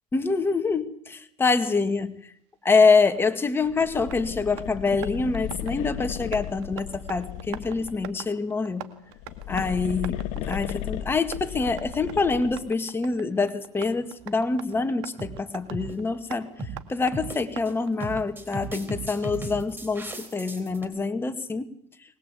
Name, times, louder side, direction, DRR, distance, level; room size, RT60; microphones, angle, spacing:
voice 1, 0.1-2.1 2.6-8.9 9.5-16.5 16.9-21.7, left 4 dB, 15° left, 8 dB, 1.9 m, -25 dB
Tap, 3.2-18.7, right 13 dB, 90° right, 2.1 m, -45 dB
sound 1, 3.7-8.2 9.1-12.7, left 13 dB, 65° left, 1.6 m, -35 dB
sound 2, 14.2-14.5 15.2-15.4 15.7-16.0 16.6-16.8 17.1-17.7 18.0-20.8, right 2 dB, 15° right, 4.0 m, -36 dB
23.5 x 20.5 x 8.4 m, 0.69 s
supercardioid pair, 125°, 13 cm